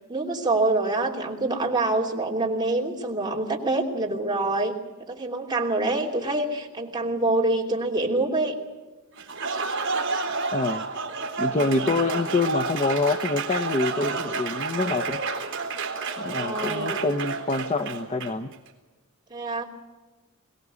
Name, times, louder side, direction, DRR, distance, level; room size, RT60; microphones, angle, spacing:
voice 1, 0.1-4.8 5.1-8.6 11.5-12.0 16.3-17.0 19.3-19.6, right 2 dB, 20° right, -1 dB, 3.0 m, -26 dB
Applause, 9.2-18.5, right 4 dB, 60° right, 3.3 m, -30 dB
voice 2, 10.5-10.8 11.4-15.2 16.2-18.5, left 3 dB, 30° left, 9 dB, 0.8 m, -26 dB
22.5 x 18.0 x 8.3 m, 1.2 s
head